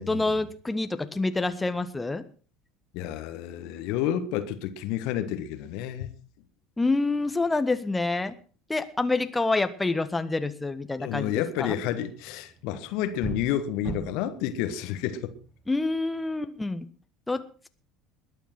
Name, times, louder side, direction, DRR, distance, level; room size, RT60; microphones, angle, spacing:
voice 1, 0.0-2.2 6.8-8.3 8.7-11.8 15.7-16.9 17.3-17.7, left 3 dB, 15° left, 1.3 m, -27 dB
voice 2, 2.9-6.1 11.0-15.3, left 11 dB, 60° left, 1.4 m, -30 dB
sound 1, 11.3-16.2, right 4 dB, 45° right, 5.7 m, -42 dB
21.0 x 7.2 x 5.9 m
figure-of-eight pair, 70°, 0 cm